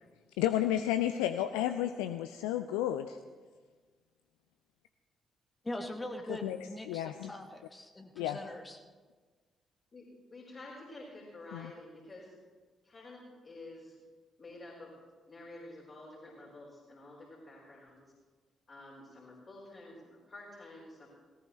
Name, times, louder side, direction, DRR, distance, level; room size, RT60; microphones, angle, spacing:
voice 1, 0.4-3.2 6.4-6.6 6.9-7.3 8.2-8.4 11.5-11.7, left 12 dB, 70° left, 9 dB, 0.4 m, -32 dB
voice 2, 5.6-8.8, left 1 dB, 20° left, 4 dB, 1.4 m, -42 dB
voice 3, 9.9-12.3 12.8-13.9 14.4-14.9 15.3-18.0 18.7-21.1, left 2 dB, 40° left, -6 dB, 5.0 m, -50 dB
19.0 x 17.5 x 3.2 m, 1.4 s
figure-of-eight pair, 40°, 0 cm